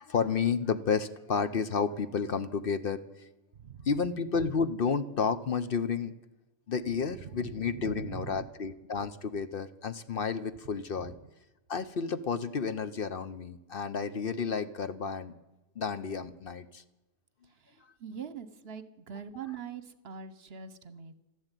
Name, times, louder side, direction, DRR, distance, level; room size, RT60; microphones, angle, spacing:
voice 1, 0.0-3.3 3.8-6.1 6.7-11.1 11.7-15.3 15.8-16.8, left 5 dB, 55° left, 12 dB, 0.9 m, -31 dB
voice 2, 3.6-3.9 6.9-7.0 7.2-8.4 11.0-11.1 17.6-21.1, right 7 dB, 60° right, 13 dB, 1.2 m, -43 dB
13.0 x 12.0 x 9.0 m, 0.97 s
omnidirectional pair, 1.2 m